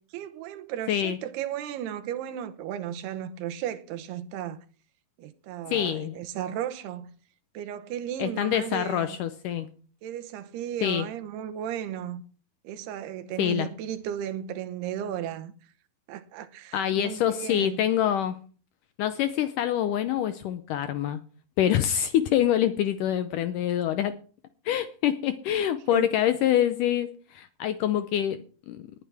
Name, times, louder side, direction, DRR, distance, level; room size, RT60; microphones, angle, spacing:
voice 1, 0.1-4.6 5.2-7.2 7.5-9.2 10.0-12.2 12.6-15.5 16.1-17.8 25.9-26.1, right 10 dB, 90° right, 3.1 m, -35 dB
voice 2, 5.7-6.2 8.2-9.7 10.8-11.1 13.4-13.7 16.7-18.4 19.0-21.2 21.6-24.1 24.7-28.8, left 10 dB, 80° left, 1.9 m, -26 dB
19.0 x 9.8 x 3.4 m
omnidirectional pair, 4.5 m